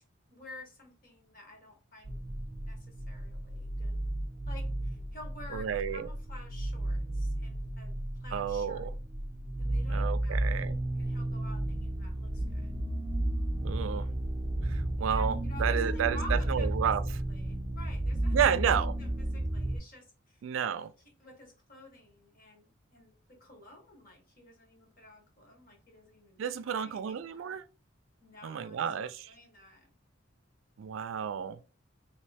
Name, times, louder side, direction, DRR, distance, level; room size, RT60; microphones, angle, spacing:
voice 1, 0.3-2.2 2.5-4.0 4.5-7.9 8.2-8.9 9.6-10.5 10.9-12.7 15.0-16.9 17.3-20.4 21.2-26.4 26.6-27.6 28.2-29.9, left 1 dB, 45° left, 1.3 m, -51 dB
sound 1, 2.0-19.8, right 1 dB, 20° right, 0.5 m, -33 dB
voice 2, 5.5-6.1 8.3-8.9 9.9-10.8 13.6-14.1 14.6-17.0 18.3-18.9 20.4-20.9 26.4-27.6 28.4-29.3 30.8-31.6, right 8 dB, 80° right, 0.3 m, -31 dB
3.1 x 2.9 x 3.3 m
head